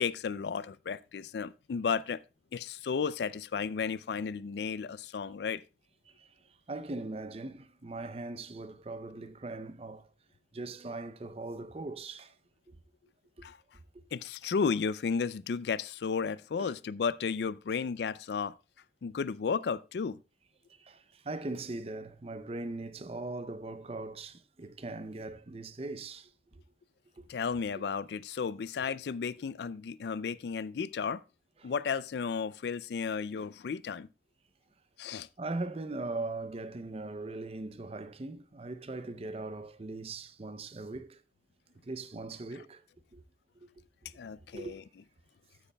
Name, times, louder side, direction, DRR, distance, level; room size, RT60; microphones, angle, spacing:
voice 1, 0.0-2.2 2.5-5.6 13.4-13.6 14.1-18.5 19.0-20.2 27.3-31.2 31.6-34.1 35.0-35.3 44.2-44.8, left 6 dB, 65° left, 0.4 m, -33 dB
voice 2, 6.7-10.1 10.5-12.3 12.7-12.8 13.4-13.5 16.6-16.7 20.8-26.3 27.2-27.3 31.6-31.7 35.4-41.2 41.8-42.8 43.1-43.2 43.6-43.7 44.5-44.8, right 2 dB, 30° right, 0.5 m, -40 dB
14.5 x 8.4 x 2.2 m
head